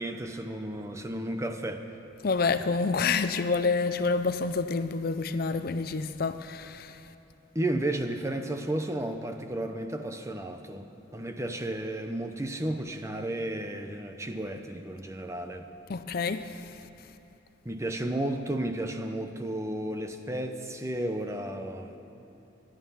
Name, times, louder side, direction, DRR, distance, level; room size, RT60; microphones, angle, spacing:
voice 1, 0.0-1.8 7.5-15.7 17.6-22.0, right 1 dB, 15° right, 0.7 m, -33 dB
voice 2, 2.2-7.0 15.9-16.7, left 4 dB, 50° left, 0.5 m, -28 dB
20.5 x 11.5 x 5.7 m
head